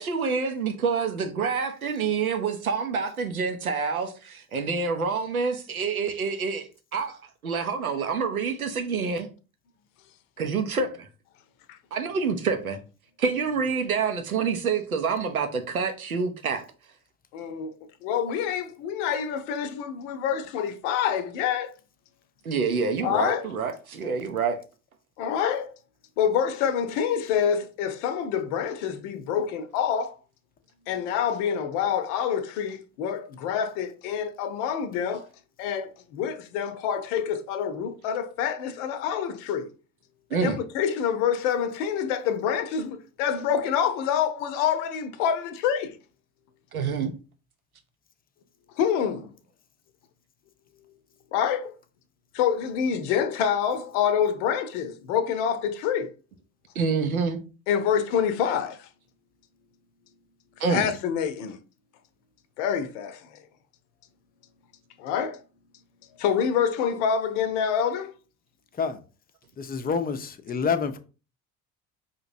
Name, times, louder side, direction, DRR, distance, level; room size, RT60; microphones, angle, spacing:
voice 1, 0.0-9.3 10.4-11.1 11.9-12.8 13.2-16.6 22.4-24.6 40.3-40.6 46.7-47.1 56.8-57.4 60.6-60.9, right 5 dB, 90° right, 0.6 m, -27 dB
voice 2, 17.3-21.7 23.0-23.5 25.2-25.7 26.2-30.2 30.9-35.3 35.6-39.7 40.4-46.0 48.8-49.3 51.3-51.8 52.3-56.1 57.7-58.9 60.7-61.6 62.6-63.3 65.0-65.4 66.2-68.1, left 8 dB, 60° left, 0.7 m, -27 dB
voice 3, 69.6-71.0, left 5 dB, 20° left, 0.5 m, -27 dB
5.0 x 2.8 x 2.6 m
figure-of-eight pair, 60°, 42 cm